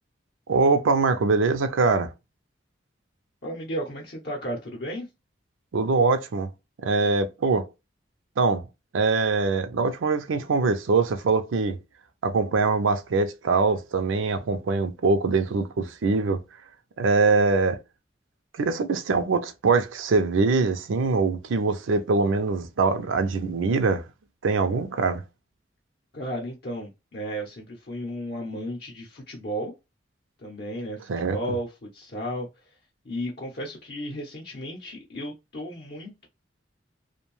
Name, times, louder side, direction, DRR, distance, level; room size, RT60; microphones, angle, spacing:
voice 1, 0.5-2.1 5.7-6.5 6.8-7.7 8.4-8.6 8.9-11.8 12.2-16.4 17.0-17.8 18.6-24.0 24.4-25.2 31.1-31.4, right 4 dB, 90° right, 0.5 m, -23 dB
voice 2, 3.4-5.1 26.1-29.7 30.4-32.5 33.0-36.3, equal, 55° left, 0.6 m, -34 dB
2.6 x 2.2 x 3.0 m
head